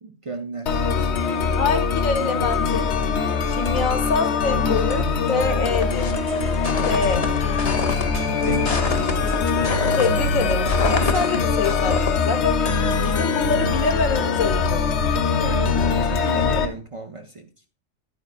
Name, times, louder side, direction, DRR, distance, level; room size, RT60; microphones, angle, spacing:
voice 1, 0.0-1.4 3.7-3.9 8.3-9.0 9.9-10.1 15.4-17.5, right 3 dB, 50° right, 0.4 m, -34 dB
sound 1, 0.7-16.7, left 5 dB, 60° left, 1.1 m, -22 dB
voice 2, 1.6-2.9 3.5-6.1 6.9-7.3 9.9-12.7 13.0-14.9, left 4 dB, 80° left, 1.4 m, -25 dB
sound 2, 5.7-13.2, left 4 dB, 35° left, 0.7 m, -29 dB
sound 3, 6.0-11.4, right 1 dB, 65° right, 1.1 m, -36 dB
10.0 x 8.8 x 2.4 m
omnidirectional pair, 1.4 m